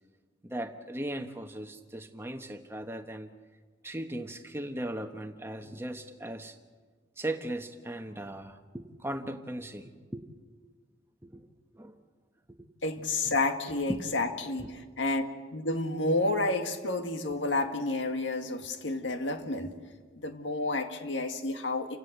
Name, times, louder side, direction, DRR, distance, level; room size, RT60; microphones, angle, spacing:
voice 1, 0.4-3.3 3.8-6.6 7.2-10.2 11.2-11.4 11.7-11.9 12.5-12.7 13.2-13.3 13.9-14.0 14.6-14.7, right 1 dB, 15° right, 6 dB, 1.1 m, -38 dB
voice 2, 12.8-14.7 15.0-15.2 15.5-19.7 20.2-22.0, left 2 dB, 80° left, 6 dB, 2.0 m, -30 dB
29.0 x 17.0 x 8.0 m, 1.5 s
head